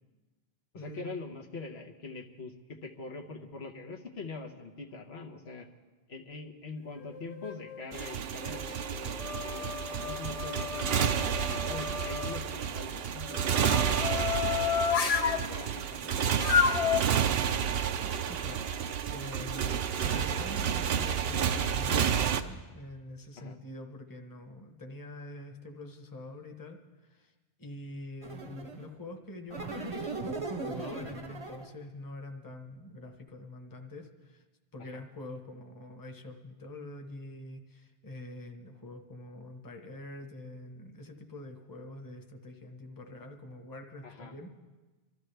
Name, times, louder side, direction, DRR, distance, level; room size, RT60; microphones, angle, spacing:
voice 1, 0.7-5.7 6.1-17.0 23.4-23.6 34.8-35.0 44.0-44.4, left 3 dB, 85° left, 1 dB, 1.5 m, -44 dB
sound 1, 7.0-7.9 8.5-12.4 13.2-15.4 16.4-17.0, left 7 dB, 45° left, 0.7 m, -31 dB
Motorcycle, 7.9-22.4, right 8 dB, 75° right, 0.8 m, -30 dB
voice 2, 18.3-18.6 19.0-26.8 27.0-27.3 27.6-30.2 30.5-34.4 34.7-44.5, left 2 dB, 20° left, 4 dB, 1.0 m, -45 dB
sound 2, 28.2-28.9 29.5-31.8, right 3 dB, 35° right, 0.8 m, -38 dB
24.5 x 13.5 x 3.4 m, 1.2 s
omnidirectional pair, 1.0 m